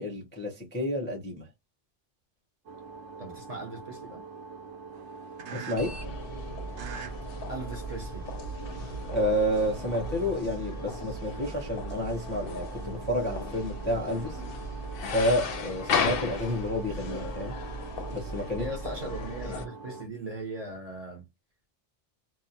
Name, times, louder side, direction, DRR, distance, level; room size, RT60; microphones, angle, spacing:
voice 1, 0.0-1.5 5.5-5.9 9.1-14.4 15.1-17.5 18.1-18.7, equal, 15° left, 0.4 m, -30 dB
sound 1, 2.7-20.1, right 4 dB, 75° right, 0.9 m, -44 dB
voice 2, 3.2-4.2 7.5-8.2 18.6-21.2, right 2 dB, 40° right, 0.7 m, -39 dB
sound 2, 5.7-19.7, left 3 dB, 60° left, 0.6 m, -35 dB
2.7 x 2.0 x 2.6 m
omnidirectional pair, 1.2 m